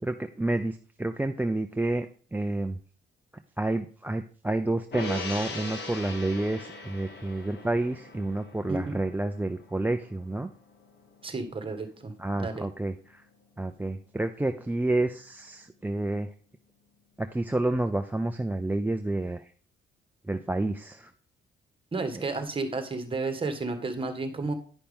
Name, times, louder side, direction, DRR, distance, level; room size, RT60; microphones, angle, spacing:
voice 1, 0.0-2.8 3.6-10.5 12.2-13.2 13.6-16.3 17.2-19.5 20.3-21.1, right 2 dB, 10° right, 6 dB, 0.5 m, -29 dB
Gong, 4.9-11.5 11.9-12.0, left 3 dB, 60° left, 1.5 m, -41 dB
voice 2, 8.7-9.0 11.2-12.7 21.9-24.5, right 3 dB, 25° right, 7 dB, 1.5 m, -32 dB
10.0 x 5.8 x 3.6 m, 0.42 s
cardioid pair, 90°, 20 cm